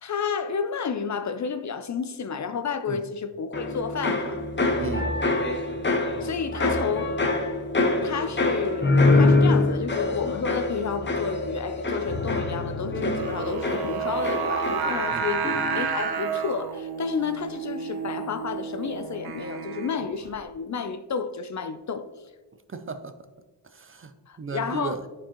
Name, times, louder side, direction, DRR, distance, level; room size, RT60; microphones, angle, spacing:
voice 1, 0.0-4.4 6.2-7.4 8.0-22.1 24.3-25.0, left 6 dB, 45° left, 0.5 m, -31 dB
sound 1, 3.5-15.1 15.4-15.9, left 2 dB, 30° left, 0.8 m, -25 dB
voice 2, 4.8-5.1 15.1-15.3 22.7-23.1 23.7-24.1 24.4-25.0, right 5 dB, 35° right, 0.4 m, -34 dB
Singing, 13.2-20.3, right 6 dB, 65° right, 0.7 m, -30 dB
9.9 x 4.6 x 2.9 m
wide cardioid pair, 100°, 40 cm